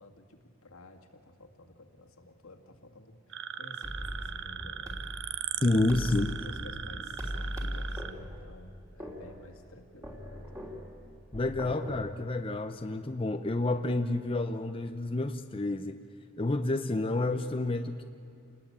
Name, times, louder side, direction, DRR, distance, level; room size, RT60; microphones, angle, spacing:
voice 1, 0.0-5.0 5.6-10.6 16.9-17.0, left 1 dB, 80° left, 3 dB, 2.0 m, -53 dB
sound 1, 3.3-8.1, right 8 dB, 60° right, 0.8 m, -39 dB
sound 2, 3.8-12.1, equal, 15° right, 3.3 m, -40 dB
voice 2, 5.6-6.3 11.3-16.0 16.4-18.0, left 2 dB, 25° left, 7 dB, 0.7 m, -29 dB
28.5 x 20.0 x 8.8 m, 2.7 s
head